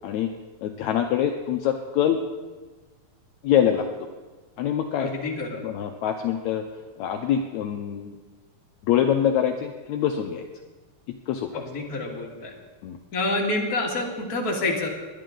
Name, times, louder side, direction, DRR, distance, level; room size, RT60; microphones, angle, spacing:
voice 1, 0.6-2.2 3.4-3.9 4.6-5.1 5.6-6.6 7.0-8.1 8.9-10.5 11.3-11.7 12.8-13.0, left 9 dB, 75° left, 4 dB, 1.9 m, -24 dB
voice 2, 5.0-5.6 11.5-12.5 13.1-14.9, left 2 dB, 30° left, -2 dB, 2.2 m, -27 dB
21.0 x 11.0 x 3.9 m, 1.3 s
omnidirectional pair, 3.6 m